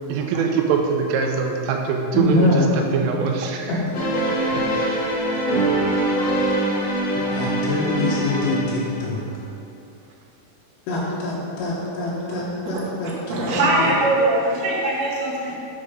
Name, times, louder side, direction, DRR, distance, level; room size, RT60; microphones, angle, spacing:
voice 1, 0.1-2.5 2.9-3.7 4.7-5.0 5.7-5.8, right 6 dB, 85° right, 2 dB, 3.3 m, -23 dB
voice 2, 2.1-2.7 3.7-3.9 7.3-9.3 10.9-14.0, left 2 dB, 75° left, -5 dB, 2.8 m, -24 dB
sound 1, 3.9-9.1, right 1 dB, 55° left, 1.8 m, -23 dB
voice 3, 13.3-15.5, right 2 dB, 70° right, -5 dB, 2.0 m, -21 dB
9.1 x 4.9 x 5.1 m, 2.6 s
omnidirectional pair, 5.8 m